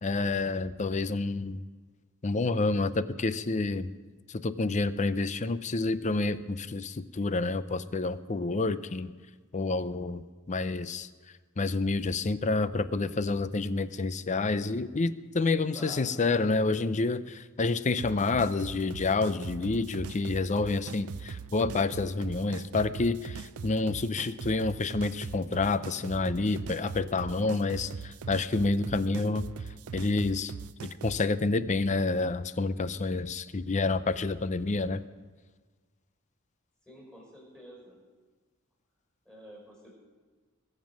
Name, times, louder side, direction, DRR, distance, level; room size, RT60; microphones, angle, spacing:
voice 1, 0.0-1.6 2.2-3.9 4.3-9.1 9.5-11.1 11.6-29.5 29.9-30.5 30.8-35.0, left 3 dB, 35° left, 14 dB, 0.5 m, -29 dB
voice 2, 15.5-16.2 36.8-38.0 39.2-39.9, equal, 5° left, -2 dB, 5.7 m, -49 dB
sound 1, 18.0-31.2, right 6 dB, 70° right, 0.5 m, -41 dB
22.0 x 7.5 x 6.3 m, 1.4 s
head